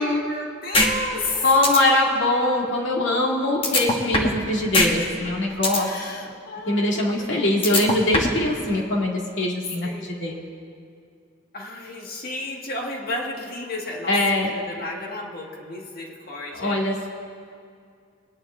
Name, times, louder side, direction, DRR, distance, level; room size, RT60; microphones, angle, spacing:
voice 1, 0.0-1.5 5.5-7.7 8.6-8.8 9.8-10.1 11.5-16.8, left 2 dB, 50° left, 0 dB, 1.7 m, -33 dB
sound 1, 0.7-0.9 1.3-1.4 1.6-1.8 3.6-4.4 4.7-4.9 5.2-5.8 7.6-8.4, left 2 dB, 30° left, 1.3 m, -20 dB
voice 2, 1.4-5.9 6.7-10.4 14.1-14.5 16.5-17.1, left 1 dB, 70° left, -2 dB, 2.3 m, -22 dB
22.5 x 9.9 x 3.8 m, 2.3 s
head